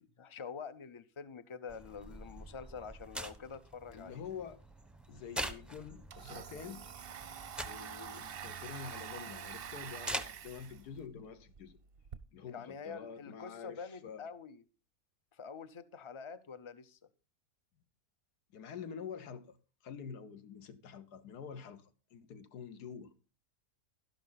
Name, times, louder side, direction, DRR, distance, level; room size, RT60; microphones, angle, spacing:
voice 1, 0.0-4.2 12.5-14.6 15.3-17.0, left 6 dB, 40° left, 0.4 m, -46 dB
sound 1, 1.7-11.1, right 1 dB, ahead, 0.6 m, -46 dB
voice 2, 3.9-4.6 5.1-6.8 7.6-11.8 12.3-14.3 18.5-19.6 19.8-23.1, left 7 dB, 85° left, 1.6 m, -47 dB
Domestic sounds home sounds, 5.2-5.3 5.6-12.2, right 8 dB, 50° right, 0.7 m, -47 dB
12.5 x 11.0 x 4.0 m
omnidirectional pair, 1.6 m